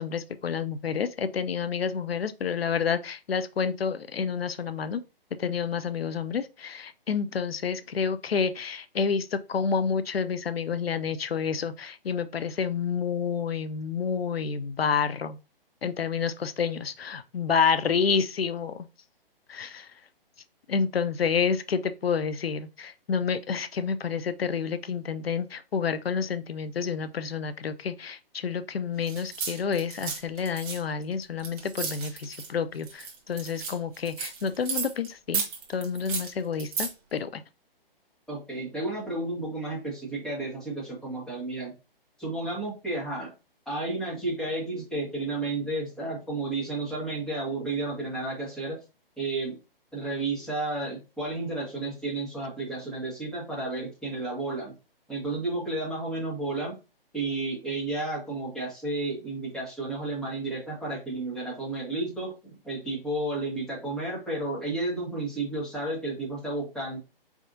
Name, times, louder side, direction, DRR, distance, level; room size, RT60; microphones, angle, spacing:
voice 1, 0.0-5.0 5.4-15.4 15.8-18.9 19.5-19.9 20.7-35.4 35.7-37.4, left 6 dB, 90° left, 0.5 m, -29 dB
sound 1, 29.0-32.5 32.8-35.1 35.3-36.9, right 5 dB, 20° right, 0.9 m, -33 dB
voice 2, 38.3-41.7 42.2-43.3 43.6-48.8 49.2-49.6 49.9-54.7 55.1-56.7 57.1-67.0, right 2 dB, ahead, 1.5 m, -32 dB
4.7 x 3.5 x 2.6 m
figure-of-eight pair, 140°, 29 cm